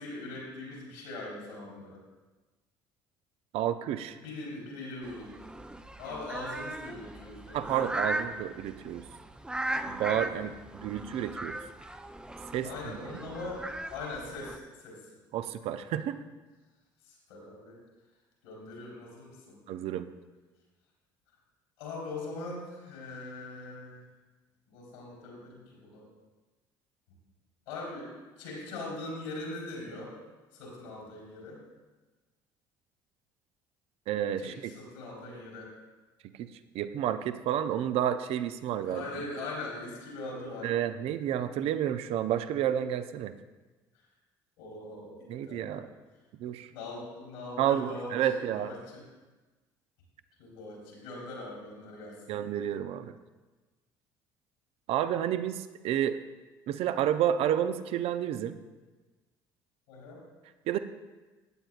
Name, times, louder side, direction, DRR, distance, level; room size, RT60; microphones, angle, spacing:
voice 1, 0.0-2.0 4.2-5.3 6.0-8.0 10.1-10.5 12.6-13.6 13.9-15.0 17.0-17.8 18.4-19.6 21.8-24.0 24.7-26.1 27.7-28.1 28.4-30.1 30.5-31.6 34.4-35.7 38.8-40.7 44.6-45.1 45.5-45.9 46.7-49.0 50.4-52.2 59.9-60.2, left 2 dB, 80° left, -3 dB, 3.6 m, -41 dB
voice 2, 3.5-4.2 7.5-9.0 9.9-11.6 12.5-13.0 15.3-16.2 19.7-20.1 34.1-34.5 36.4-36.5 36.7-39.0 40.6-43.3 45.3-45.9 46.4-46.7 47.6-48.7 52.3-53.1 54.9-56.2 56.7-58.6 60.7-60.8, right 10 dB, 60° right, 11 dB, 0.6 m, -30 dB
sound 1, 5.0-14.6, right 1 dB, 10° right, 0.6 m, -38 dB
15.0 x 8.9 x 2.4 m, 1.2 s
hypercardioid pair, 60°, 11 cm